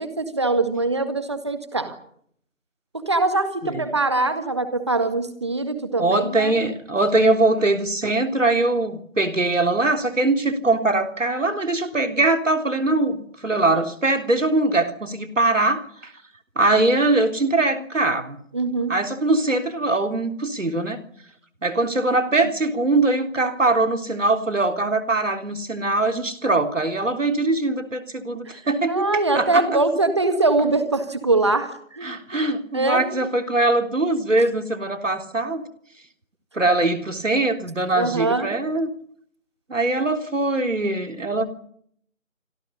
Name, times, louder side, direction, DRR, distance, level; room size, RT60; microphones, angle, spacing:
voice 1, 0.0-2.0 2.9-6.5 18.5-18.9 28.9-32.4 32.7-33.2 37.9-38.5, right 3 dB, 20° right, 9 dB, 1.9 m, -23 dB
voice 2, 6.0-16.1 16.6-18.4 18.9-21.0 21.6-29.1 29.3-29.8 32.0-35.6 36.5-38.9 39.7-41.5, right 2 dB, 70° right, 6 dB, 3.6 m, -22 dB
28.5 x 26.0 x 5.6 m, 0.66 s
figure-of-eight pair, 170°, 39 cm